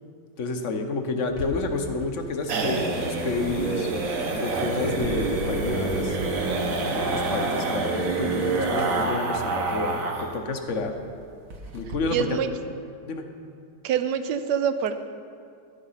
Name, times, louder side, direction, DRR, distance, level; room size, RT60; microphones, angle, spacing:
voice 1, 0.4-3.9 4.3-6.2 6.9-10.9 11.7-12.4 13.1-13.3, left 3 dB, 50° left, 6 dB, 1.1 m, -29 dB
sound 1, 1.3-10.4 10.7-10.8 11.1-11.2 11.5-12.0, right 3 dB, 55° right, 1.4 m, -27 dB
sound 2, 2.7-9.1, equal, 75° left, 3.1 m, -37 dB
voice 2, 12.1-12.5 13.8-14.9, right 8 dB, 75° right, 10 dB, 1.2 m, -25 dB
11.5 x 9.0 x 5.6 m, 2.3 s
omnidirectional pair, 1.9 m